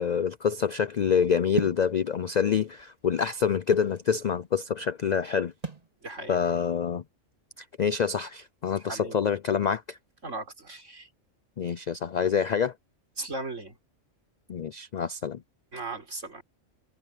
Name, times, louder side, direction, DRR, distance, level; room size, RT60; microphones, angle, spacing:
voice 1, 0.0-5.5 6.3-7.0 7.8-10.0 11.6-12.7 14.5-15.4, left 7 dB, 60° left, 0.4 m, -26 dB
sound 1, 1.6-1.9 2.8-4.0 5.6-5.9, right 3 dB, 30° right, 3.4 m, -34 dB
voice 2, 6.0-6.4 8.8-9.2 10.2-11.1 13.2-13.8 15.7-16.4, right 2 dB, 70° right, 4.7 m, -37 dB
omnidirectional pair, 1.3 m